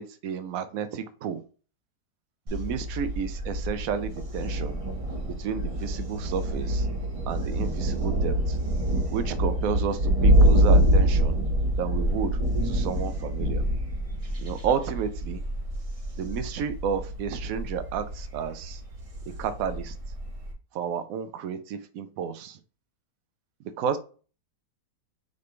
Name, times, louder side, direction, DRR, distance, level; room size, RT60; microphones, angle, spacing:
voice 1, 0.0-1.4 2.5-4.8 5.4-6.9 7.3-8.6 9.1-11.4 11.7-12.4 12.6-13.6 14.4-15.4 16.2-18.8 19.4-20.0 20.7-22.6 23.8-24.0, right 7 dB, 70° right, 11 dB, 0.9 m, -31 dB
Thunder, 2.5-20.5, right 1 dB, 35° right, 0.5 m, -26 dB
4.1 x 3.3 x 3.2 m, 0.37 s
omnidirectional pair, 1.9 m